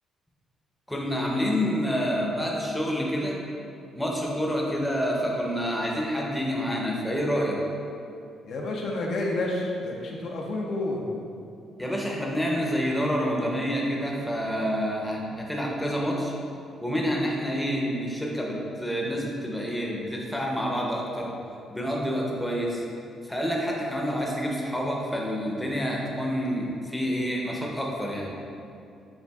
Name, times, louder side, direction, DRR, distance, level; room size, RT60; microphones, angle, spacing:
voice 1, 0.9-3.4 3.9-7.6 11.8-16.3 16.8-21.3 21.7-22.8 23.2-28.3, equal, 5° left, -2 dB, 0.6 m, -28 dB
voice 2, 8.4-11.1, left 2 dB, 65° left, -1 dB, 0.5 m, -29 dB
6.9 x 2.4 x 2.3 m, 2.6 s
cardioid pair, 95°, 0 cm